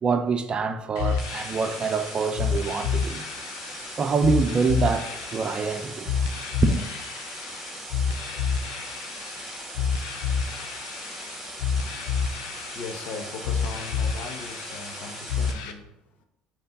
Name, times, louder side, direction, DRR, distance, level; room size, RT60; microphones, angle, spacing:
voice 1, 0.0-3.2 4.0-6.1 6.6-6.9, right 5 dB, 35° right, 0.6 m, -25 dB
sound 1, 1.0-15.7, left 6 dB, 80° left, 0.6 m, -30 dB
sound 2, 1.2-15.5, right 1 dB, 5° right, 2.1 m, -39 dB
voice 2, 12.4-15.9, left 4 dB, 60° left, 1.1 m, -39 dB
5.7 x 3.6 x 5.3 m
hypercardioid pair, 75°, 3 cm